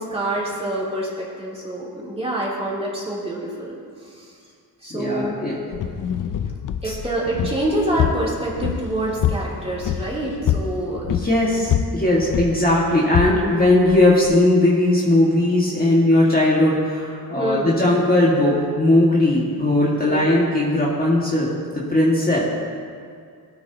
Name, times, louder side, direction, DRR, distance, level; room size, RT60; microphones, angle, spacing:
voice 1, 0.0-3.7 4.0-4.3 4.8-5.4 6.8-11.1 17.3-17.8 20.0-20.3, right 1 dB, 15° right, -7 dB, 3.2 m, -26 dB
voice 2, 4.9-5.6 6.8-6.9 11.1-22.4, left 1 dB, 25° left, -6 dB, 1.9 m, -18 dB
sound 1, 5.7-14.4, left 9 dB, 55° left, 0.5 m, -26 dB
17.5 x 9.1 x 2.9 m, 2.2 s
cardioid pair, 95°, 37 cm